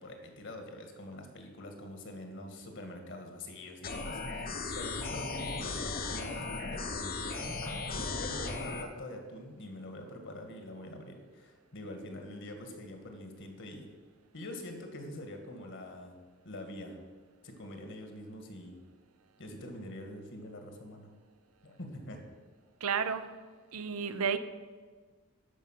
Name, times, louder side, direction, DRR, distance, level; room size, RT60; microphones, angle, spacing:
voice 1, 0.0-13.9 14.3-16.2 16.4-17.0 17.4-18.8 19.4-21.1 21.6-22.3, left 1 dB, 60° left, 4 dB, 1.8 m, -45 dB
sound 1, 3.8-8.8, left 3 dB, 40° left, 1.1 m, -36 dB
voice 2, 22.8-23.2 23.7-24.4, right 6 dB, 70° right, 11 dB, 0.7 m, -31 dB
12.0 x 5.4 x 7.4 m, 1.4 s
head